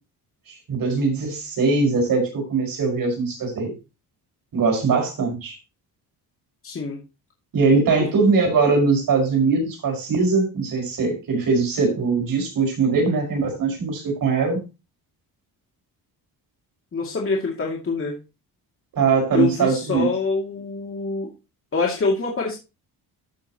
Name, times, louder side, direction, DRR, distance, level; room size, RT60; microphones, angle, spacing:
voice 1, 0.5-3.7 4.5-5.6 7.5-14.6 18.9-20.1, right 4 dB, 60° right, 1 dB, 5.5 m, -21 dB
voice 2, 6.6-7.0 8.0-8.1 16.9-18.2 19.3-21.3 21.7-22.6, left 4 dB, 35° left, -1 dB, 2.4 m, -25 dB
13.5 x 6.7 x 3.0 m, 0.28 s
cardioid pair, 115°, 39 cm